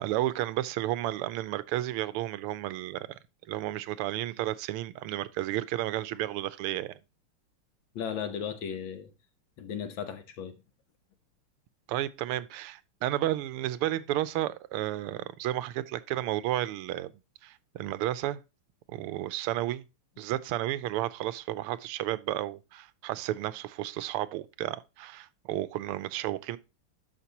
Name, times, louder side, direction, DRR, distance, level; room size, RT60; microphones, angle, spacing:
voice 1, 0.0-3.1 3.5-6.9 11.9-17.1 17.4-18.4 18.9-19.8 20.2-26.6, right 14 dB, 85° right, 1.5 m, -32 dB
voice 2, 7.9-9.1 9.6-10.5, left 8 dB, 65° left, 1.7 m, -35 dB
12.5 x 5.2 x 2.9 m
omnidirectional pair, 2.4 m